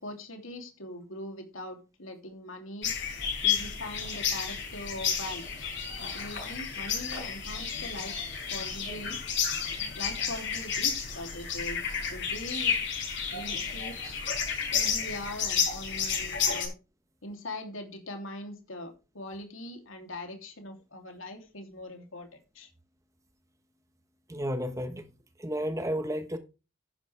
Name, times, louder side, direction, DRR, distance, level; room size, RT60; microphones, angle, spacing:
voice 1, 0.0-2.9 3.4-8.1 8.5-9.2 9.9-12.7 13.3-14.2 14.7-16.7 17.2-22.7, left 1 dB, 75° left, 3.2 m, -41 dB
sound 1, 2.8-16.7, left 7 dB, 55° left, 5.5 m, -31 dB
voice 2, 24.3-25.1 25.4-26.4, equal, 15° right, 1.2 m, -32 dB
11.5 x 10.0 x 3.5 m
head